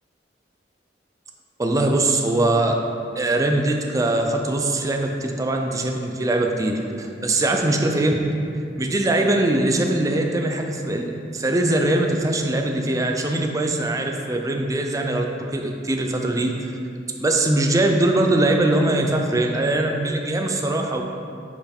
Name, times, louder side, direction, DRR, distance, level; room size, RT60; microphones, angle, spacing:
voice 1, 1.6-2.7 3.2-8.2 8.8-11.0 11.3-16.7 17.2-21.0, right 2 dB, 20° right, 3 dB, 0.4 m, -22 dB
5.1 x 4.7 x 4.4 m, 2.4 s
head